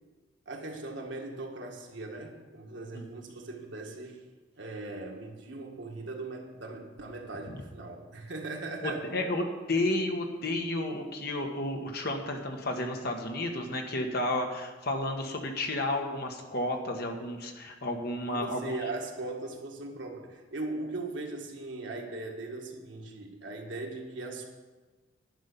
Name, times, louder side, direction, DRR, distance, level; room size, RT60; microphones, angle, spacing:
voice 1, 0.4-4.2 4.6-9.1 18.3-24.5, right 2 dB, 70° right, 1 dB, 1.7 m, -39 dB
voice 2, 8.8-18.8, left 1 dB, 55° left, 3 dB, 1.4 m, -32 dB
10.5 x 5.6 x 8.3 m, 1.3 s
head